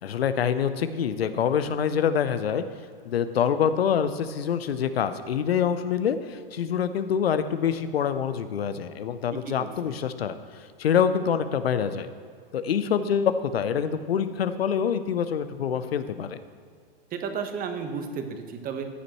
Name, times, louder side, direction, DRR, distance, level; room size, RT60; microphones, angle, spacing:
voice 1, 0.0-2.6 3.1-12.1 12.5-16.4, left 8 dB, 85° left, 11 dB, 0.7 m, -26 dB
voice 2, 9.5-10.0 17.1-18.8, right 6 dB, 30° right, 6 dB, 1.2 m, -33 dB
14.0 x 8.6 x 3.1 m, 2.1 s
hypercardioid pair, 110°, 30 cm